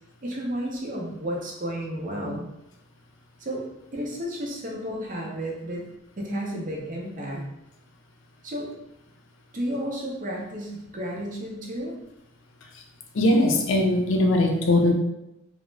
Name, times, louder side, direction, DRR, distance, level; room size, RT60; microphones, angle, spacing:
voice 1, 0.2-2.5 3.4-3.6 3.9-5.8 6.2-7.4 8.4-8.7 9.5-11.9, equal, 40° right, -1 dB, 0.6 m, -32 dB
voice 2, 13.1-14.9, left 1 dB, 65° left, 2 dB, 0.4 m, -20 dB
2.3 x 2.0 x 3.2 m, 0.87 s
head